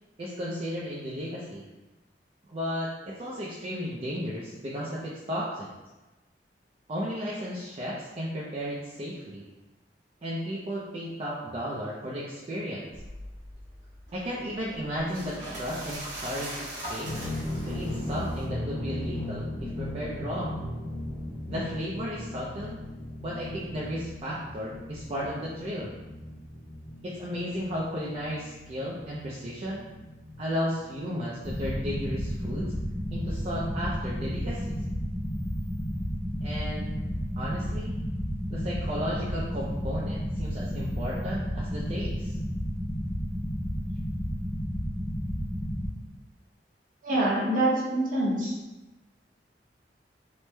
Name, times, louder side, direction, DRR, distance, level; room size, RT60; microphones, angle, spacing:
voice 1, 0.2-1.6 2.5-5.7 6.9-9.4 10.2-12.9 14.1-17.1 17.6-20.7 21.5-22.8 23.2-25.9 27.0-29.9 30.4-32.7 33.1-34.8 36.4-36.9 37.4-38.0 38.5-42.4, equal, 35° right, -6 dB, 0.4 m, -34 dB
sound 1, 12.9-18.5, right 1 dB, 75° right, 1.0 m, -41 dB
sound 2, 17.0-34.1, left 1 dB, 20° left, 0.7 m, -38 dB
sound 3, 31.4-45.9, equal, 55° left, 1.1 m, -32 dB
voice 2, 47.0-48.5, right 1 dB, 50° right, -4 dB, 0.8 m, -25 dB
3.0 x 2.1 x 3.2 m, 1.1 s
head